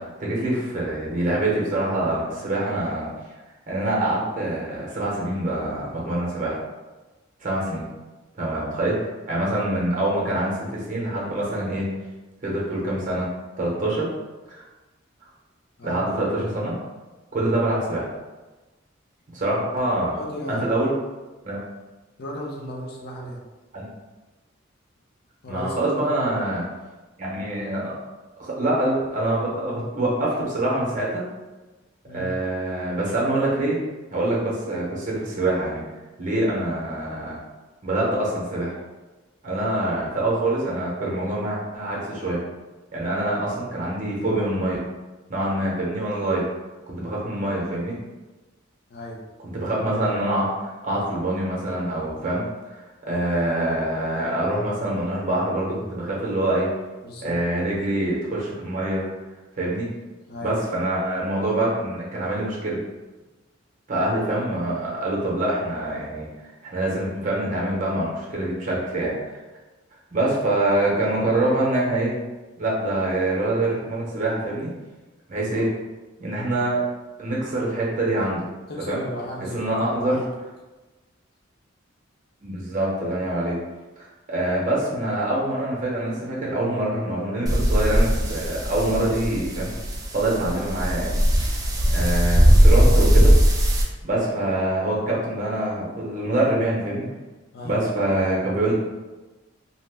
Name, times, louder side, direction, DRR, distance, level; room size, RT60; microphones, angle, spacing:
voice 1, 0.0-3.1 3.7-6.6 7.4-7.9 8.4-11.9 12.4-13.3 13.6-14.1 14.5-14.6 15.8-16.7 17.3-18.1 19.3-20.1 20.5-20.9 21.4-21.6 23.7-23.9 25.5-26.6 27.2-27.9 28.4-31.2 32.1-33.8 34.1-35.8 36.2-37.4 37.8-38.7 39.4-42.4 42.9-44.8 45.3-46.4 46.9-48.0 49.4-52.7 53.0-56.7 57.2-59.0 59.6-59.9 60.4-62.8 63.9-66.3 66.6-69.4 70.1-72.1 72.6-74.7 75.3-75.7 76.2-76.8 77.2-78.5 78.9-79.0 79.5-80.2 82.4-83.6 84.0-89.7 90.1-91.2 91.9-93.3 94.0-97.1 97.6-98.7, right 1 dB, 40° right, -4 dB, 0.7 m, -25 dB
voice 2, 20.1-20.8 22.2-23.4 25.4-26.3 32.1-32.4 48.9-49.2 57.0-57.7 60.3-60.8 75.4-75.7 78.7-80.2 97.5-97.8, equal, 50° left, -2 dB, 0.6 m, -35 dB
sound 1, 87.5-93.8, equal, 20° right, 0.3 m, -19 dB
2.7 x 2.1 x 3.3 m, 1.2 s
head